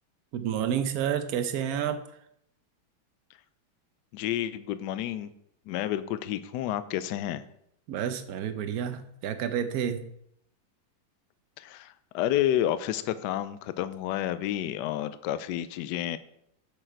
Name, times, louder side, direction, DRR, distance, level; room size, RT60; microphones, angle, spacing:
voice 1, 0.3-2.0 7.9-10.0, right 9 dB, 60° right, 9 dB, 1.0 m, -30 dB
voice 2, 4.1-5.3 5.7-7.4 11.6-16.2, left 12 dB, 75° left, 13 dB, 1.1 m, -30 dB
7.5 x 6.9 x 4.5 m, 0.74 s
omnidirectional pair, 2.1 m